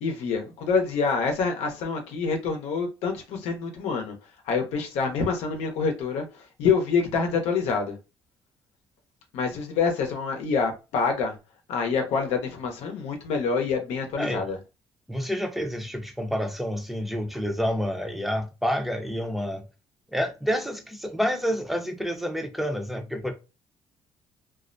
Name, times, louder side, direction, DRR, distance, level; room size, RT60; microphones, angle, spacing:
voice 1, 0.0-4.2 4.4-8.0 9.3-11.4 11.7-14.6, left 5 dB, 85° left, 0.7 m, -26 dB
voice 2, 14.2-14.5 15.1-19.6 20.1-23.3, equal, ahead, 0.6 m, -28 dB
2.3 x 2.1 x 2.5 m
cardioid pair, 95°, 11 cm